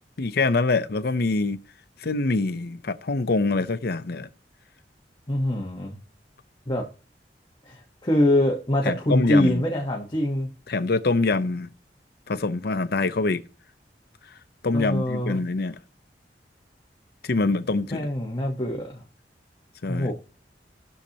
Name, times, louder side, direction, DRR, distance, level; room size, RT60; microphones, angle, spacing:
voice 1, 0.2-1.6 2.0-4.3 8.8-9.6 10.7-11.7 12.3-13.4 14.6-15.8 17.2-18.1 19.8-20.1, left 3 dB, 65° left, 0.7 m, -24 dB
voice 2, 5.3-6.0 6.7-6.9 7.7-10.5 14.7-15.4 17.9-19.0 19.9-20.1, left 1 dB, 25° left, 1.1 m, -24 dB
18.5 x 6.5 x 2.9 m
head